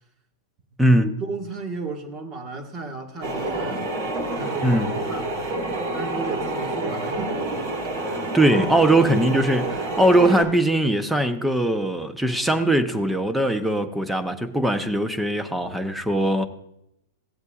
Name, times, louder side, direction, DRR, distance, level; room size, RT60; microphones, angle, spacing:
voice 1, 0.9-3.9 4.4-5.3 5.9-7.3, right 3 dB, 30° right, 1.7 m, -34 dB
sound 1, 3.2-10.4, right 2 dB, 55° right, 2.9 m, -28 dB
voice 2, 8.3-16.4, right 1 dB, 5° right, 0.8 m, -20 dB
16.0 x 8.0 x 2.5 m
hypercardioid pair, 130°, 0 cm